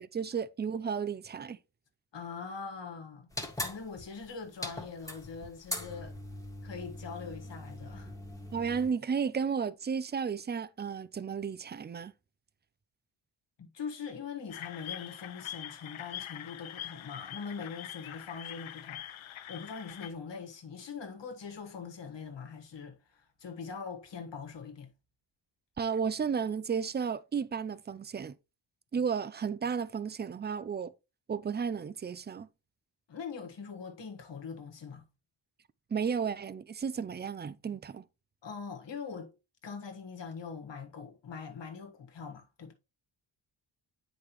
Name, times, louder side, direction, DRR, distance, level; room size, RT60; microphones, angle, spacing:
voice 1, 0.0-1.6 8.5-12.1 25.8-28.4 28.9-30.9 31.3-32.5 35.9-38.0, right 6 dB, 25° right, 0.3 m, -33 dB
voice 2, 2.1-3.3 3.6-6.1 6.6-8.1 13.6-24.9 33.1-35.0 38.4-39.3 39.6-42.7, left 5 dB, 65° left, 1.5 m, -42 dB
sound 1, 3.3-8.9, left 1 dB, 5° left, 1.7 m, -41 dB
sound 2, 14.5-20.1, left 12 dB, 85° left, 0.7 m, -44 dB
8.6 x 5.0 x 3.0 m
wide cardioid pair, 100°, 47 cm